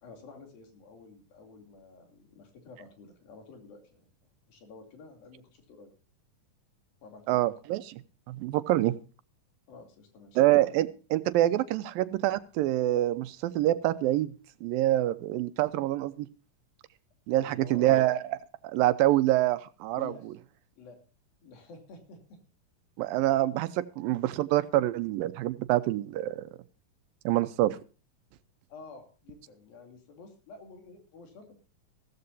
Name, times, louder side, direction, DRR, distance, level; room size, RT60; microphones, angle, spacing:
voice 1, 0.0-4.1 4.5-5.9 7.0-7.4 9.7-10.4 17.4-18.0 20.0-20.3 20.8-21.0 21.4-22.4 28.7-31.5, left 4 dB, 85° left, 4 dB, 4.7 m, -50 dB
voice 2, 7.3-8.0 8.3-8.9 10.4-14.3 14.6-16.3 17.3-18.4 18.6-20.3 23.0-26.4 27.3-27.8, right 15 dB, 85° right, 14 dB, 2.5 m, -26 dB
15.5 x 14.5 x 2.7 m, 0.36 s
omnidirectional pair, 4.0 m